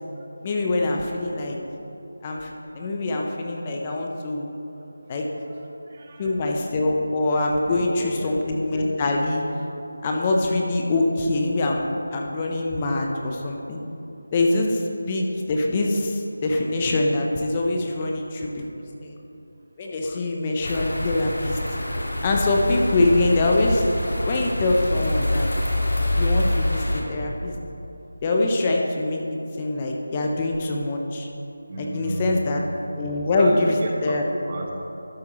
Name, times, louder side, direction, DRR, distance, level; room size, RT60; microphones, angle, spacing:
voice 1, 0.4-1.6 2.2-4.5 5.1-5.3 6.2-9.4 10.0-13.8 14.3-18.6 19.0-19.1 19.8-21.6 22.2-23.9 24.3-25.5 26.2-27.5 28.2-29.2 29.6-31.3 31.8-32.6 33.0-34.2, left 2 dB, 20° left, 0 dB, 0.6 m, -24 dB
voice 2, 5.9-6.3 7.7-8.3 31.7-32.6 33.3-34.7, right 1 dB, 35° right, 1 dB, 1.0 m, -34 dB
sound 1, 20.6-27.0, left 1 dB, 90° left, 1.7 m, -25 dB
12.5 x 8.1 x 3.0 m, 2.9 s
figure-of-eight pair, 170°, 0 cm